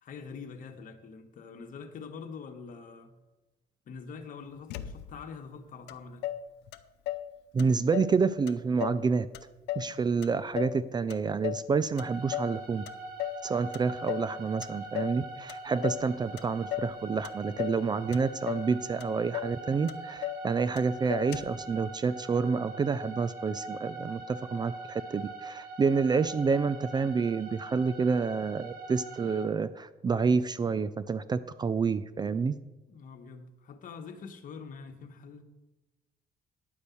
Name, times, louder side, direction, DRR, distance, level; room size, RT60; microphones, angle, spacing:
voice 1, 0.0-3.2 3.8-6.3 32.9-35.4, left 5 dB, 50° left, 6 dB, 1.4 m, -45 dB
Motor vehicle (road), 4.7-5.4 5.9-6.0 6.2-7.3 7.6-8.2 8.5-9.1 9.3-10.8 11.1-11.7 12.0-12.6 12.9-13.4 13.7-14.3 14.6-15.2 15.5-16.1 16.4-17.0 17.2-17.8 18.1-18.7 19.0-19.1 19.3-19.6 19.9-20.5 20.8-20.9 21.1-21.6, left 14 dB, 85° left, 0.6 m, -36 dB
voice 2, 7.5-9.3 9.8-12.8 13.4-32.6, right 5 dB, 25° right, 15 dB, 0.4 m, -28 dB
sound 1, 12.0-29.5, right 2 dB, 65° right, 2.1 m, -43 dB
10.5 x 5.3 x 8.4 m, 1.0 s
cardioid pair, 110°, 17 cm